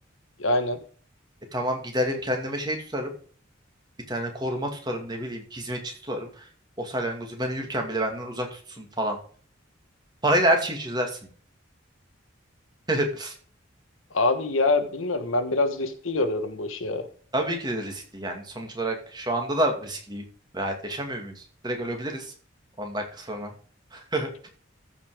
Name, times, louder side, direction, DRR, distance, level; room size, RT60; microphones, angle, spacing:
voice 1, 0.4-0.8 14.1-17.0, left 2 dB, 90° left, 9 dB, 1.4 m, -25 dB
voice 2, 1.5-3.1 4.1-6.5 6.8-9.2 10.2-11.2 12.9-13.3 17.3-20.2 20.5-22.3 22.8-23.5 23.9-24.3, right 1 dB, 20° right, 3 dB, 2.4 m, -28 dB
14.0 x 5.7 x 5.0 m, 0.44 s
head